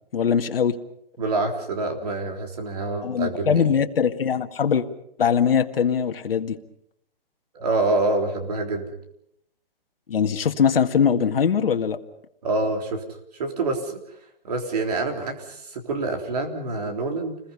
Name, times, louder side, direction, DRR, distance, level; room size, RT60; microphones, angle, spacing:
voice 1, 0.1-0.8 3.0-4.9 5.2-6.6 10.1-12.0, left 7 dB, 75° left, 6 dB, 2.0 m, -21 dB
voice 2, 1.2-3.6 7.5-8.9 12.4-13.0 13.3-14.0 14.4-17.4, right 2 dB, 45° right, 4 dB, 3.6 m, -26 dB
29.0 x 21.0 x 5.5 m, 0.75 s
hypercardioid pair, 175°, 29 cm